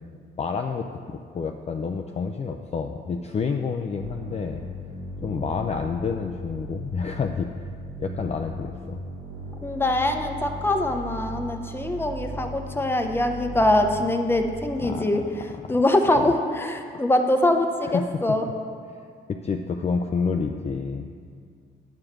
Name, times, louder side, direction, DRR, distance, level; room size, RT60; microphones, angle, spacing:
voice 1, 0.4-4.6 5.2-7.5 8.0-9.0 14.8-15.3 15.6-15.8 16.2-16.3 16.9-17.0 17.8-18.1 19.3-21.1, left 5 dB, 35° left, 4 dB, 0.5 m, -29 dB
sound 1, 4.0-14.5, equal, 75° right, 2.4 m, -37 dB
voice 2, 9.6-18.5, left 1 dB, 10° left, 4 dB, 0.8 m, -23 dB
9.3 x 4.9 x 7.3 m, 2.2 s
cardioid pair, 90°, 20 cm